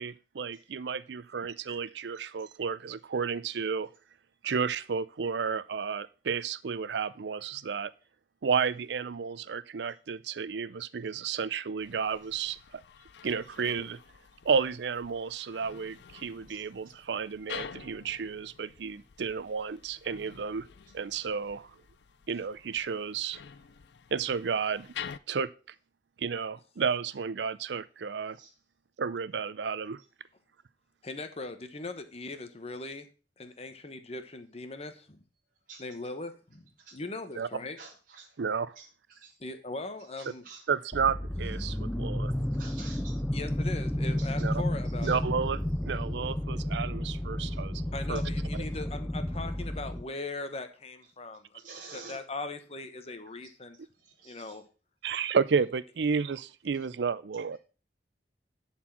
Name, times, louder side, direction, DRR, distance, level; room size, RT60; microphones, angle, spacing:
voice 1, 0.0-3.9 4.4-7.9 8.4-12.8 13.2-14.0 14.4-20.7 20.9-21.7 22.3-23.4 24.1-24.9 25.3-25.5 26.2-28.4 29.0-30.0 37.3-37.5 38.4-38.7 40.7-42.3 44.4-44.5 45.0-47.8 48.1-48.2 55.0-57.6, right 6 dB, 75° right, 0.5 m, -32 dB
sound 1, 11.8-25.2, left 7 dB, 70° left, 0.5 m, -48 dB
voice 2, 16.5-16.9 28.3-28.5 35.7-35.9 36.8-37.0 37.8-38.4 38.7-39.4 40.0-40.7 42.5-43.2 44.2-44.3 44.8-45.1 47.5-47.6 48.1-48.2 51.6-52.2 53.4-53.5 53.9-54.6 56.7-56.9 57.5-57.6, right 4 dB, 50° right, 1.2 m, -50 dB
voice 3, 31.0-33.1 33.4-35.2 35.8-37.8 39.4-40.4 43.3-45.2 47.9-51.4 51.9-53.8 54.2-54.6, left 3 dB, 35° left, 1.1 m, -40 dB
sound 2, 40.9-50.0, left 1 dB, 5° left, 0.4 m, -32 dB
11.0 x 4.4 x 5.8 m
head